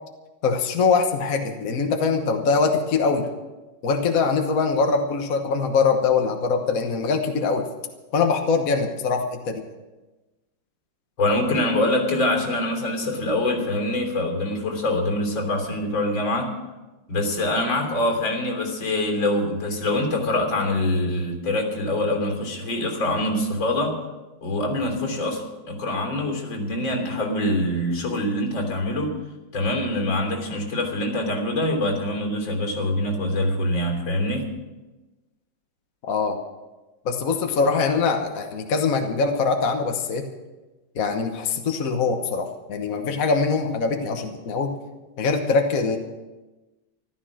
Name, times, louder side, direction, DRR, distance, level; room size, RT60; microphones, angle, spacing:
voice 1, 0.4-3.2 3.8-7.7 8.1-9.6 36.0-36.4 37.0-40.3 40.9-44.8 45.2-46.0, left 4 dB, 50° left, 4 dB, 1.4 m, -23 dB
voice 2, 11.2-16.5 17.1-24.0 24.4-29.1 29.5-34.5, left 1 dB, 80° left, 1 dB, 4.1 m, -24 dB
14.5 x 13.0 x 6.2 m, 1.1 s
omnidirectional pair, 2.1 m